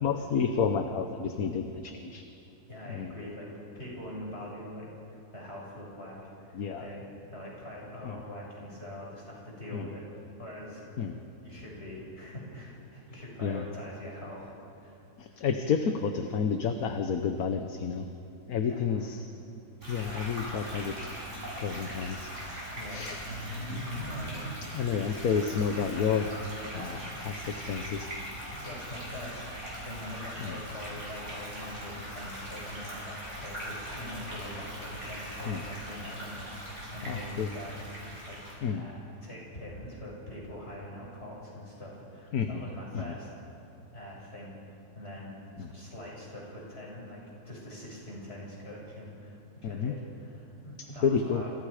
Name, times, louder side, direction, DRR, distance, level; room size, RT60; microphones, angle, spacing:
voice 1, 0.0-2.2 2.9-3.1 6.5-6.9 8.0-8.2 9.7-9.9 11.0-11.2 13.4-13.6 15.2-18.0 18.5-19.3 19.9-21.0 21.6-22.3 22.9-23.2 23.7-23.8 24.6-26.3 26.8-27.0 27.3-28.1 30.4-30.6 35.5-35.6 37.1-37.5 38.6-38.9 42.3-42.6 42.9-43.0 45.6-45.7 49.6-49.9 50.8-51.4, left 6 dB, 60° left, 6 dB, 1.5 m, -30 dB
voice 2, 2.7-10.8 11.4-14.5 14.8-15.0 15.3-15.4 18.7-19.2 22.7-23.1 23.9-24.5 28.6-29.4 29.8-37.8 38.1-38.4 38.7-43.3 43.9-51.5, left 1 dB, 40° left, -3 dB, 6.9 m, -43 dB
sound 1, 19.8-38.6, equal, 45° right, 8.4 m, -40 dB
28.0 x 27.5 x 5.0 m, 2.7 s
omnidirectional pair, 1.7 m